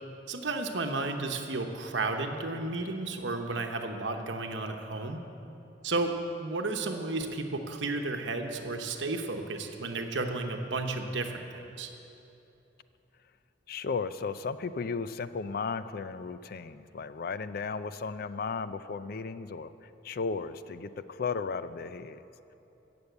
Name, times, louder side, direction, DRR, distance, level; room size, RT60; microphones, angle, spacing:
voice 1, 0.3-5.2 5.8-11.9, right 3 dB, 85° right, 5 dB, 0.9 m, -33 dB
voice 2, 13.7-19.7 20.0-22.2, left 5 dB, 55° left, 13 dB, 0.4 m, -35 dB
15.0 x 6.9 x 8.1 m, 3.0 s
head